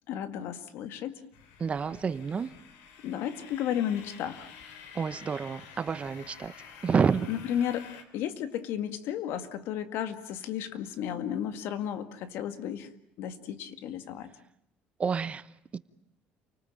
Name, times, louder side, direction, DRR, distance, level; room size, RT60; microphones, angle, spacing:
voice 1, 0.1-1.2 3.0-4.5 7.3-12.9 13.2-14.3, left 10 dB, 75° left, 2.0 m, -33 dB
sound 1, 1.3-8.0, left 7 dB, 90° left, 3.3 m, -50 dB
voice 2, 1.6-2.5 4.9-6.6 6.8-7.3 15.0-15.8, right 6 dB, 30° right, 1.0 m, -29 dB
29.0 x 19.0 x 9.0 m
cardioid pair, 110°, 4 cm